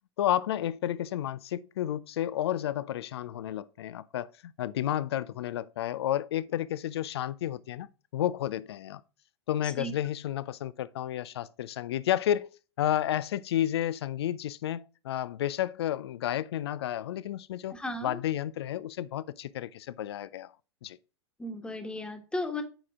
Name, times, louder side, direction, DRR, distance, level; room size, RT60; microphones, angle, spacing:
voice 1, 0.2-7.9 8.1-9.0 9.5-12.5 12.8-20.5 20.8-21.0, left 11 dB, 65° left, 0.5 m, -31 dB
voice 2, 17.7-18.2 21.4-22.6, left 1 dB, 5° left, 1.4 m, -35 dB
8.9 x 4.9 x 3.6 m
figure-of-eight pair, 95°, 14 cm